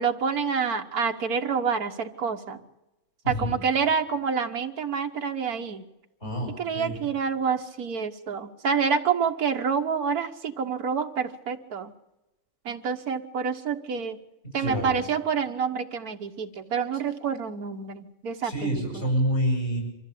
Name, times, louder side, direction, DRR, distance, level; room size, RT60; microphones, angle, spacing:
voice 1, 0.0-2.6 3.3-5.8 6.6-11.9 12.6-14.2 14.5-19.1, right 6 dB, 80° right, 5 dB, 1.7 m, -28 dB
voice 2, 6.2-7.0 14.6-15.0 18.4-19.8, equal, 45° left, 1 dB, 8.4 m, -27 dB
25.0 x 14.5 x 8.5 m, 0.96 s
omnidirectional pair, 1.5 m